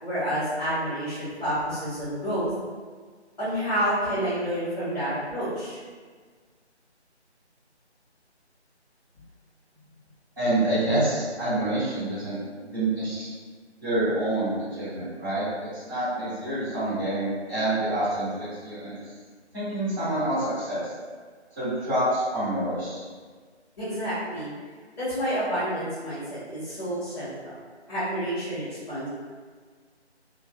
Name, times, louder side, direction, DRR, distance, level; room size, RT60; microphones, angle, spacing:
voice 1, 0.0-2.5 3.4-5.8 23.8-24.5 25.0-27.5 27.9-29.1, equal, 35° left, -16 dB, 1.2 m, -29 dB
voice 2, 10.4-12.4 12.7-13.3 13.8-15.5 15.7-18.9 19.5-20.9 21.6-23.0, right 1 dB, 20° right, -17 dB, 1.1 m, -27 dB
2.6 x 2.5 x 2.4 m, 1.5 s
figure-of-eight pair, 160°, 34 cm